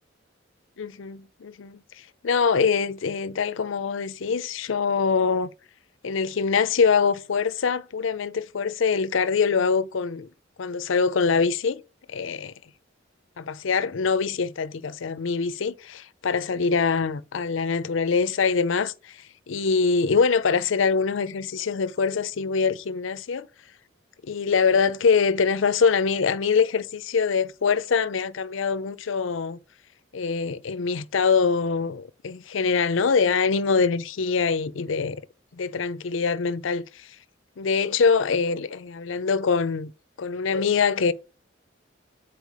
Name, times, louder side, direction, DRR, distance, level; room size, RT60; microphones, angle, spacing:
voice 1, 0.8-5.5 6.0-10.3 10.6-11.8 12.1-12.5 13.4-23.5 24.2-29.6 30.1-35.2 35.5-37.2 37.6-39.9 40.2-41.1, left 5 dB, 75° left, 0.5 m, -24 dB
8.2 x 4.4 x 4.7 m
head